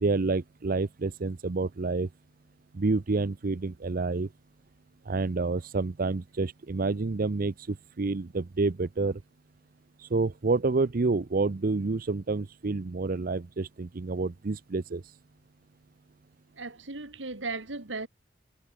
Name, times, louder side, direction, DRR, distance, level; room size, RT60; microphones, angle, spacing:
voice 1, 0.0-2.1 2.7-4.3 5.1-9.2 10.0-15.1, right 3 dB, 50° right, 0.6 m, -28 dB
voice 2, 16.6-18.1, right 3 dB, 70° right, 2.5 m, -36 dB
head